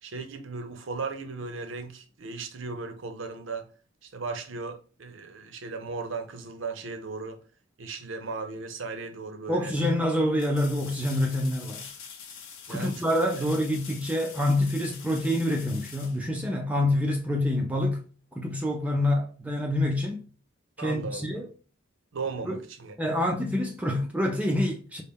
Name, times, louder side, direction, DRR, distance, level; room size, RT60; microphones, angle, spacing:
voice 1, 0.0-3.7 4.0-7.4 7.8-9.7 12.7-13.5 20.8-21.4 22.1-23.2, right 4 dB, 65° right, 0.6 m, -36 dB
voice 2, 9.5-11.9 12.7-18.0 18.3-20.2 20.8-21.5 22.5-22.6 23.0-25.0, left 1 dB, 5° right, 0.4 m, -26 dB
sound 1, 10.3-17.0 19.8-19.9, left 7 dB, 75° left, 0.7 m, -45 dB
4.0 x 2.0 x 3.4 m
head